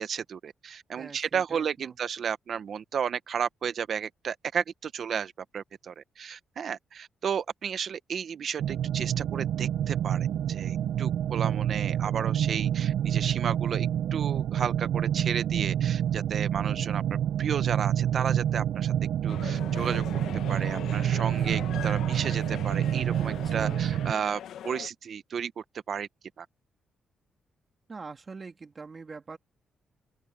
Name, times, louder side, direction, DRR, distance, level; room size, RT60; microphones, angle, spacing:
voice 1, 0.0-17.0 17.4-18.9 19.2-20.0 20.5-26.1 26.4-26.5, right 7 dB, 50° right, 1.1 m, -33 dB
voice 2, 1.0-2.0 23.3-23.8 27.9-29.4, right 4 dB, 25° right, 2.6 m, -44 dB
sound 1, 8.6-24.1, right 10 dB, 80° right, 0.6 m, -28 dB
sound 2, 19.3-24.9, left 10 dB, 85° left, 1.3 m, -41 dB
open air
cardioid pair, 150°, 0 cm